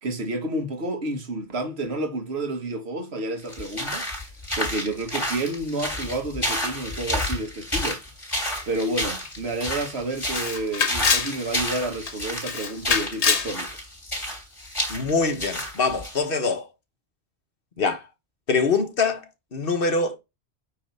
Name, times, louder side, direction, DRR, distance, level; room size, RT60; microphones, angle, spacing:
voice 1, 0.0-4.0 4.6-8.0 8.7-13.7, right 2 dB, 70° right, 1.7 m, -30 dB
sound 1, 3.4-16.2, left 1 dB, 25° left, 3.7 m, -30 dB
Camera, 9.3-9.4 9.7-9.8 10.3-11.4 11.8-12.1 12.4-13.5, left 6 dB, 80° left, 1.4 m, -24 dB
voice 2, 14.9-16.6 17.8-18.0 18.5-19.2 19.5-20.2, left 4 dB, 55° left, 1.3 m, -24 dB
8.7 x 3.4 x 5.3 m
omnidirectional pair, 1.1 m